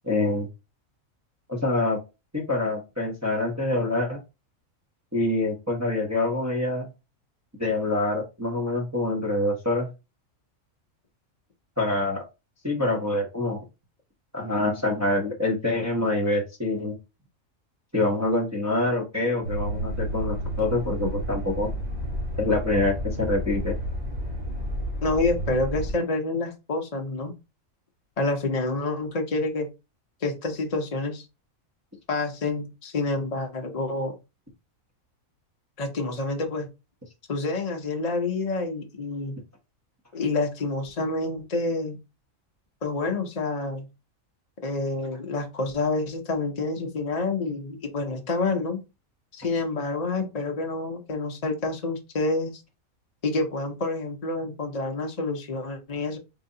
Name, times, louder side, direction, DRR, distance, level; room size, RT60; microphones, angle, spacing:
voice 1, 0.0-0.5 1.5-2.0 2.3-4.2 5.1-6.9 7.6-9.9 11.8-12.3 12.6-13.6 14.3-16.9 17.9-21.7 22.4-23.7, left 2 dB, 15° right, -1 dB, 0.8 m, -25 dB
sound 1, 19.4-25.9, equal, 30° right, 1.5 m, -31 dB
voice 2, 25.0-27.3 28.2-29.7 30.2-31.3 32.1-34.1 35.8-36.7 37.3-39.3 40.1-42.0 42.8-43.9 44.6-48.8 49.3-52.6 53.2-56.2, left 3 dB, 35° left, 2 dB, 0.7 m, -28 dB
3.9 x 2.8 x 3.8 m, 0.26 s
omnidirectional pair, 1.4 m